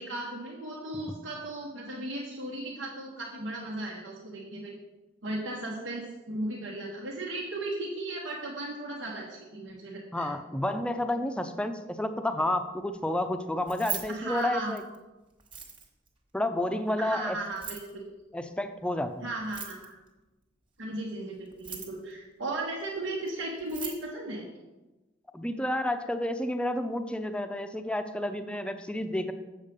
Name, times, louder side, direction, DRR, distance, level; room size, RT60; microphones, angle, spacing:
voice 1, 0.0-4.8 5.2-10.3 14.1-14.7 17.0-18.0 19.2-19.9 20.8-24.5, right 2 dB, 85° right, -2 dB, 1.3 m, -36 dB
voice 2, 10.1-14.8 16.3-17.4 18.3-19.1 25.3-29.3, left 1 dB, 5° left, 8 dB, 0.5 m, -30 dB
Keys jangling, 13.6-15.0 15.4-16.1 17.4-17.9 19.4-20.1 21.4-22.1 23.3-23.4 23.6-24.0, right 8 dB, 25° right, 1.4 m, -39 dB
7.4 x 7.2 x 5.3 m, 1.1 s
head